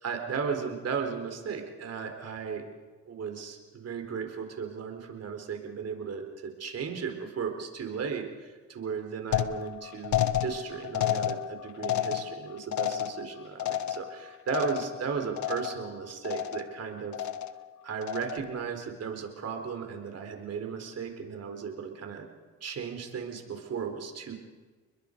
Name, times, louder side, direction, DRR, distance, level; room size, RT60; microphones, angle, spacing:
voice 1, 0.0-2.7 3.1-17.3 17.8-22.3 22.6-24.3, right 6 dB, 55° right, 4 dB, 4.1 m, -35 dB
sound 1, 9.3-15.1 15.4-15.9 16.2-16.8 17.1-17.7 18.0-18.6, left 11 dB, 70° left, 1.1 m, -31 dB
30.0 x 21.5 x 5.3 m, 1.4 s
cardioid pair, 90°, 30 cm